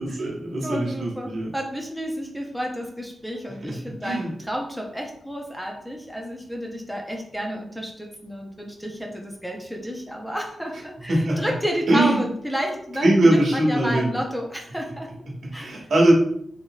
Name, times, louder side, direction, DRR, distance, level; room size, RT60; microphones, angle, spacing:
voice 1, 0.0-1.5 3.6-3.8 4.0-4.3 11.1-11.5 11.9-12.2 13.0-14.2 15.3-16.1, right 1 dB, 70° right, -3 dB, 1.4 m, -21 dB
voice 2, 0.6-15.1 15.5-15.7, equal, ahead, 1 dB, 0.8 m, -31 dB
4.0 x 3.8 x 2.4 m, 0.68 s
cardioid pair, 65°, 0 cm